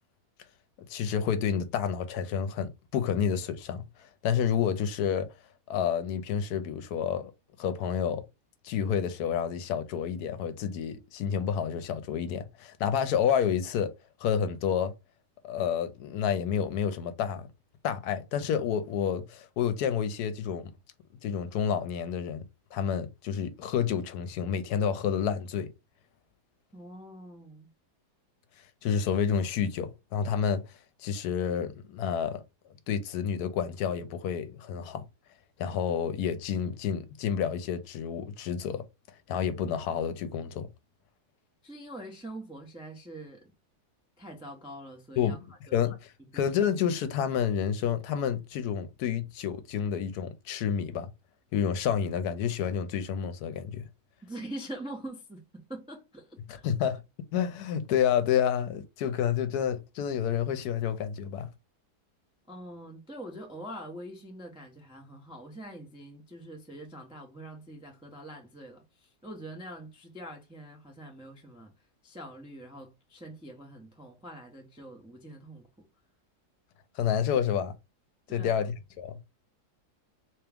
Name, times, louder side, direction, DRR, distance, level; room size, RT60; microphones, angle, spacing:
voice 1, 0.9-3.8 4.2-5.3 5.7-7.3 7.6-8.2 8.6-13.9 14.2-14.9 15.4-17.5 17.8-20.7 21.2-22.4 22.7-25.7 28.8-30.6 31.0-32.4 32.9-35.0 35.6-38.8 39.3-40.7 45.2-45.4 45.7-46.0 46.3-51.1 51.5-53.8 56.6-57.0 57.3-61.5 77.0-77.7 78.3-79.2, left 8 dB, 75° left, 1.1 m, -29 dB
voice 2, 26.7-27.7 41.6-43.5 44.2-45.9 46.2-46.4 54.2-56.7 62.5-71.7 72.0-75.7 78.3-78.7, right 1 dB, 5° right, 0.3 m, -44 dB
3.5 x 3.0 x 3.4 m
omnidirectional pair, 1.7 m